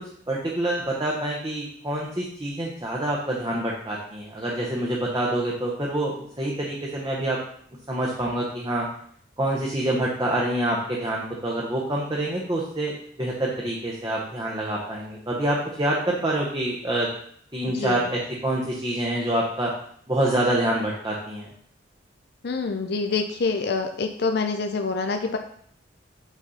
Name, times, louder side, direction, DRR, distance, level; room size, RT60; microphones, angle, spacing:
voice 1, 0.3-7.4 7.9-8.9 9.4-17.1 17.5-19.7 20.1-21.5, right 1 dB, 20° right, -3 dB, 1.0 m, -26 dB
voice 2, 17.7-18.1 22.4-25.4, left 4 dB, 60° left, 5 dB, 0.5 m, -26 dB
8.1 x 4.2 x 4.2 m, 0.62 s
head